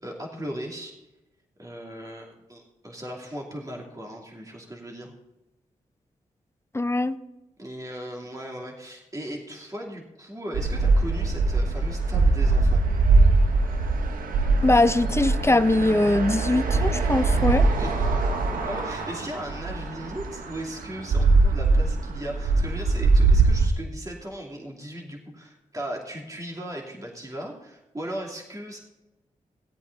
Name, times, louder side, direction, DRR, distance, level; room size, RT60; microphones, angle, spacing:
voice 1, 0.0-1.0 1.6-5.1 7.6-12.8 17.7-18.3 18.6-28.8, right 1 dB, 25° right, -1 dB, 2.7 m, -37 dB
voice 2, 6.7-7.2 14.6-17.7, left 2 dB, 20° left, 12 dB, 0.7 m, -21 dB
sound 1, 10.5-23.7, right 3 dB, 85° right, 1.3 m, -22 dB
17.0 x 8.5 x 4.0 m, 0.99 s
cardioid pair, 55°, 14 cm